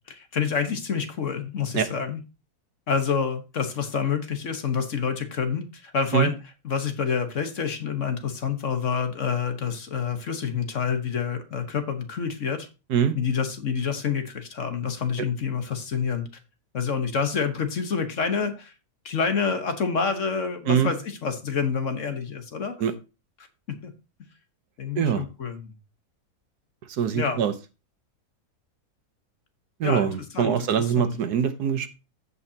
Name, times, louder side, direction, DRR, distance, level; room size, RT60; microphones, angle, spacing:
voice 1, 0.1-2.2 2.9-6.3 6.6-12.7 13.1-16.3 16.7-18.7 19.0-22.8 23.8-23.9 24.8-25.7 27.1-27.4 29.8-31.2, left 6 dB, 55° left, 8 dB, 1.5 m, -28 dB
voice 2, 26.9-27.5 29.8-31.9, right 8 dB, 85° right, 10 dB, 1.6 m, -23 dB
15.0 x 5.6 x 2.8 m, 0.29 s
omnidirectional pair, 1.6 m